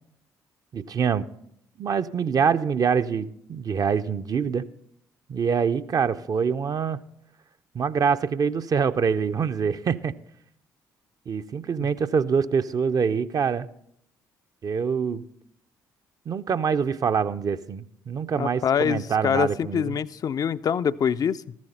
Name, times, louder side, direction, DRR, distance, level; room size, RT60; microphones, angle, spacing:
voice 1, 0.7-1.2 1.8-4.7 5.3-7.0 7.7-10.1 11.3-13.7 14.6-15.2 16.3-19.9, right 6 dB, 40° right, 0.5 m, -25 dB
voice 2, 18.4-21.6, left 7 dB, 40° left, 0.4 m, -25 dB
14.0 x 10.5 x 4.2 m
figure-of-eight pair, 45°, 9 cm